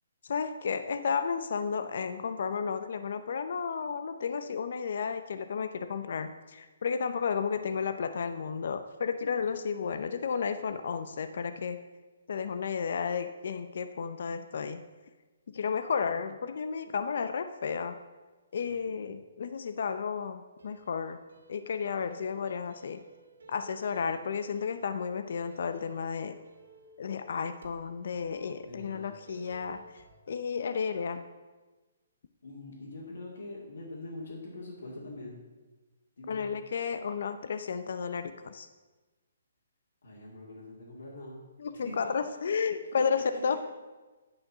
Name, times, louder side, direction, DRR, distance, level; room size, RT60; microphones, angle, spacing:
voice 1, 0.2-11.8 12.3-14.8 15.5-18.0 18.5-21.2 21.5-23.0 23.5-26.4 27.0-29.8 30.3-31.2 36.3-38.7 41.6-43.6, left 6 dB, 55° left, 10 dB, 0.6 m, -32 dB
voice 2, 18.6-19.1 28.6-29.1 32.4-35.4 36.2-36.5 40.0-41.4 41.8-42.1 42.5-42.6 43.0-43.1, left 2 dB, 80° left, -7 dB, 2.4 m, -43 dB
sound 1, 20.6-30.2, right 1 dB, 85° right, 2.4 m, -57 dB
9.1 x 5.7 x 7.3 m, 1.2 s
hypercardioid pair, 165°, 0 cm